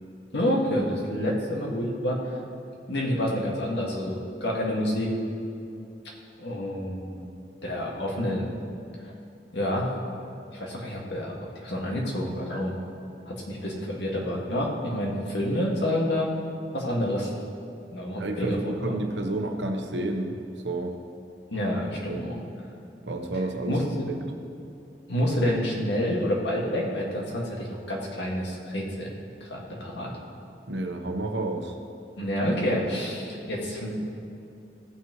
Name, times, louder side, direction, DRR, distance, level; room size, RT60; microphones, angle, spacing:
voice 1, 0.3-2.3 2.9-5.1 6.4-7.3 7.6-8.4 9.5-9.9 10.5-11.3 11.6-12.7 13.3-16.3 16.7-17.3 17.9-19.0 21.5-22.3 23.7-23.8 25.1-29.1 29.4-30.1 32.2-33.9, equal, 75° left, -3 dB, 1.9 m, -28 dB
voice 2, 18.2-20.4 20.6-20.9 22.1-22.3 23.1-23.8 24.1-24.2 30.7-31.7, right 2 dB, 80° right, 3 dB, 1.0 m, -30 dB
16.0 x 5.7 x 3.1 m, 2.7 s
head